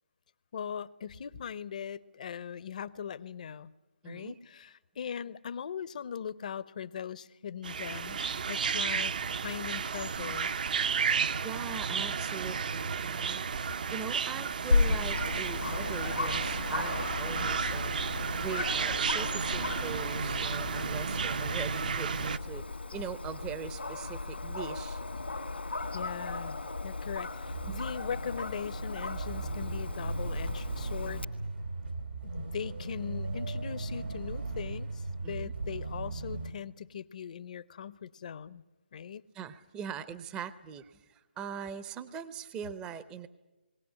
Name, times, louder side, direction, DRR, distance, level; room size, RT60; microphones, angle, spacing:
voice 1, 0.5-3.7 4.0-10.5 25.9-31.3 32.2-38.6 38.9-39.2, left 8 dB, 45° left, 16 dB, 0.7 m, -40 dB
voice 2, 4.0-4.4 11.4-13.4 13.9-17.9 18.4-22.6 22.9-25.0 27.7-27.8 35.2-35.5 39.3-43.3, right 7 dB, 15° right, 13 dB, 0.6 m, -41 dB
sound 1, 7.6-22.4, right 6 dB, 55° right, 0.8 m, -32 dB
Dog, 14.7-31.2, left 3 dB, 85° left, 2.0 m, -35 dB
sound 2, 27.4-36.5, right 3 dB, 85° right, 3.6 m, -37 dB
21.0 x 17.0 x 9.8 m, 1.1 s
figure-of-eight pair, 150°, 6 cm